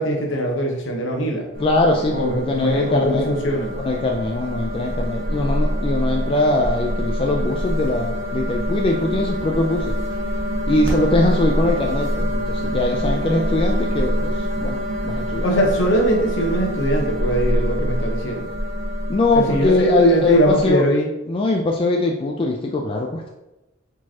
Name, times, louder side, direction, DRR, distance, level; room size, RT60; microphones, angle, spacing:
voice 1, 0.0-1.4 2.1-3.8 15.4-18.5 19.3-21.1, right 1 dB, 65° left, 1 dB, 0.9 m, -21 dB
sound 1, 1.5-20.7, equal, 70° right, 1.1 m, -25 dB
voice 2, 1.6-3.3 3.8-10.0 10.7-14.8 15.0-15.5 19.1-20.9 21.3-23.3, left 2 dB, 25° left, 1 dB, 0.3 m, -21 dB
4.9 x 3.8 x 2.8 m, 0.97 s
head